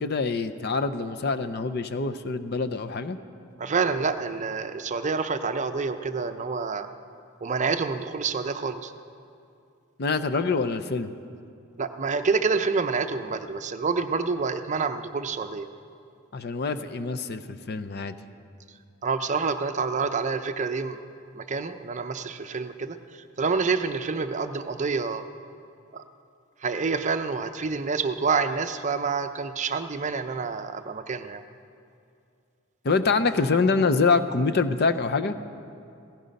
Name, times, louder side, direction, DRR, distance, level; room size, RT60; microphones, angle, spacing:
voice 1, 0.0-3.2 10.0-11.1 16.3-18.1 32.8-35.4, left 4 dB, 50° left, 9 dB, 0.6 m, -25 dB
voice 2, 3.6-6.9 7.4-8.9 11.8-15.7 19.0-21.0 21.3-25.2 25.9-26.0 26.6-31.4, right 4 dB, 35° right, 9 dB, 0.6 m, -28 dB
16.5 x 15.5 x 5.3 m, 2.4 s
head